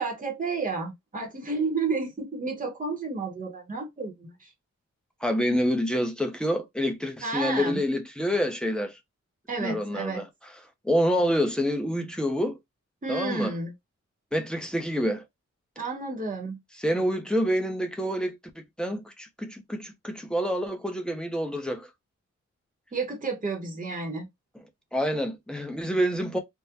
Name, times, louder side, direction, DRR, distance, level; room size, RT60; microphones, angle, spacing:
voice 1, 0.0-4.5 7.2-7.8 9.5-10.2 13.0-13.7 15.8-16.6 22.9-24.3, right 4 dB, 30° right, 0.8 m, -31 dB
voice 2, 5.2-9.0 9.6-10.3 10.8-12.6 13.1-13.5 14.3-15.2 16.8-18.4 18.8-21.9 24.9-26.4, equal, 5° left, 0.6 m, -27 dB
3.5 x 2.1 x 2.8 m
wide cardioid pair, 150°, 29 cm